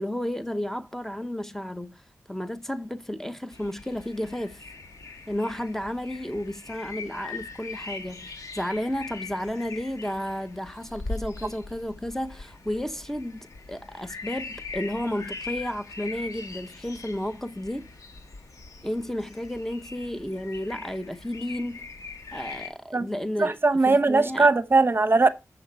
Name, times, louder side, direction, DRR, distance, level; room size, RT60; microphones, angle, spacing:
voice 1, 0.0-2.0 2.3-4.6 5.3-17.9 18.8-21.8 22.3-23.6 23.8-24.5, left 1 dB, 5° left, 0.7 m, -32 dB
sound 1, 3.5-22.7, left 3 dB, 80° left, 1.7 m, -41 dB
voice 2, 23.4-25.3, right 3 dB, 40° right, 0.8 m, -20 dB
7.9 x 6.0 x 4.5 m
cardioid pair, 55°, 6 cm